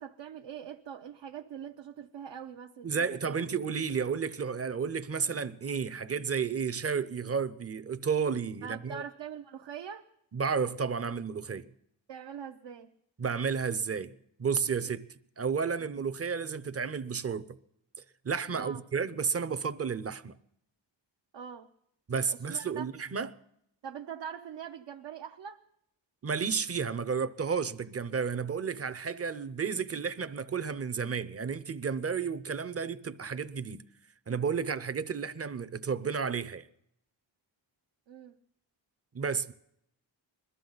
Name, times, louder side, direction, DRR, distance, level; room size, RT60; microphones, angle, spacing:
voice 1, 0.0-3.3 8.6-10.1 12.1-12.9 18.5-18.8 21.3-21.7 22.3-22.9 23.8-25.6 38.1-38.4, right 8 dB, 70° right, 0.8 m, -43 dB
voice 2, 2.8-9.0 10.3-11.7 13.2-14.1 14.4-15.1 15.4-17.6 18.2-20.4 22.1-23.3 26.2-33.9 34.3-36.7 39.1-39.5, right 6 dB, 30° right, 0.6 m, -32 dB
21.5 x 13.5 x 4.0 m
wide cardioid pair, 140°, 46 cm